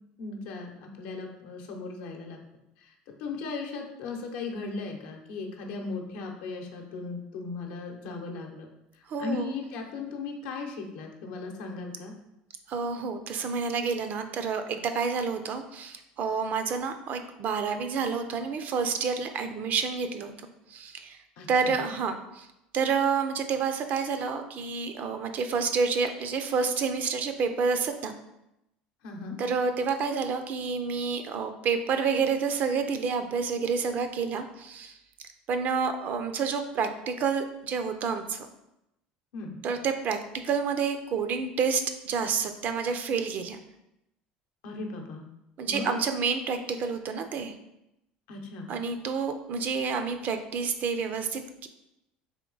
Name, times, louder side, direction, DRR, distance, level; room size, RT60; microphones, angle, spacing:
voice 1, 0.2-2.4 3.2-8.7 9.2-12.1 21.4-21.8 29.0-29.4 39.3-39.6 44.6-45.2 45.6-46.0 48.3-48.7, left 4 dB, 75° left, 2 dB, 0.7 m, -37 dB
voice 2, 9.1-9.5 12.7-20.3 20.7-21.2 21.5-22.5 22.7-28.1 29.4-35.0 35.5-38.5 39.6-40.2 40.4-43.6 45.6-47.5 48.7-51.7, right 5 dB, 50° right, 8 dB, 0.5 m, -29 dB
3.5 x 3.0 x 3.9 m, 0.88 s
supercardioid pair, 95°, 4 cm